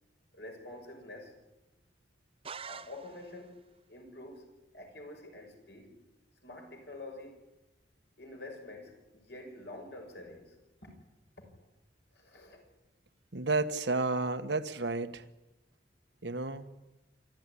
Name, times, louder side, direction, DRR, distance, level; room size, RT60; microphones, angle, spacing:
voice 1, 0.3-1.3 2.6-3.6 3.9-4.5 4.7-6.0 6.4-7.4 8.2-10.6 10.8-10.9 11.4-11.7 12.1-12.6, left 2 dB, 65° left, 6.4 m, -47 dB
sound 1, 2.4-3.5, right 6 dB, 30° right, 0.8 m, -45 dB
voice 2, 13.3-15.2 16.2-16.7, right 3 dB, 80° right, 1.4 m, -31 dB
27.0 x 13.5 x 10.0 m
head